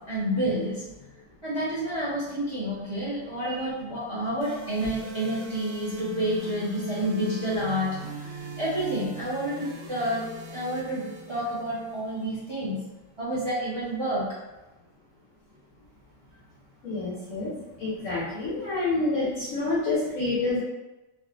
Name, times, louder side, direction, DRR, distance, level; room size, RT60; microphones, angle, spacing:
voice 1, 0.1-0.8 1.4-10.2 10.5-12.8 13.2-14.3, right 1 dB, 35° right, -9 dB, 0.4 m, -29 dB
sound 1, 4.4-12.4, right 1 dB, 70° right, 0.8 m, -40 dB
voice 2, 16.8-17.5 17.8-20.6, left 2 dB, 65° left, -6 dB, 0.8 m, -28 dB
3.5 x 2.4 x 2.4 m, 1.0 s
omnidirectional pair, 1.9 m